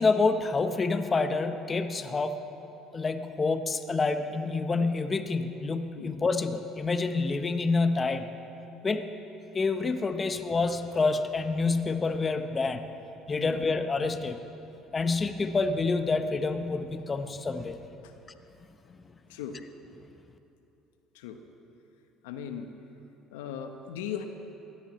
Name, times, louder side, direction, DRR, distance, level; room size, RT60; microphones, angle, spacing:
voice 1, 0.0-2.4 2.9-8.3 8.8-9.1 9.5-12.8 13.3-14.4 14.9-17.8, left 3 dB, 30° left, 9 dB, 1.0 m, -27 dB
voice 2, 19.3-19.6 21.1-21.4 22.2-22.7 23.3-24.2, left 8 dB, 85° left, 6 dB, 1.0 m, -38 dB
22.5 x 17.0 x 3.2 m, 3.0 s
hypercardioid pair, 75°, 0 cm